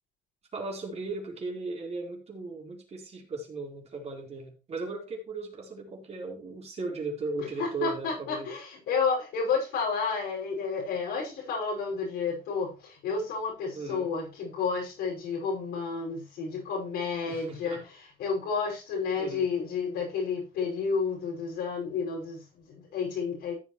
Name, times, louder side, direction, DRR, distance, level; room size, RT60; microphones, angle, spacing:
voice 1, 0.5-8.5 13.7-14.1 17.2-17.8 19.1-19.5, right 3 dB, 40° right, -1 dB, 4.2 m, -37 dB
voice 2, 7.4-17.8 18.2-23.5, left 5 dB, 85° left, -4 dB, 5.6 m, -31 dB
14.5 x 7.5 x 3.1 m, 0.31 s
cardioid pair, 110°, 17 cm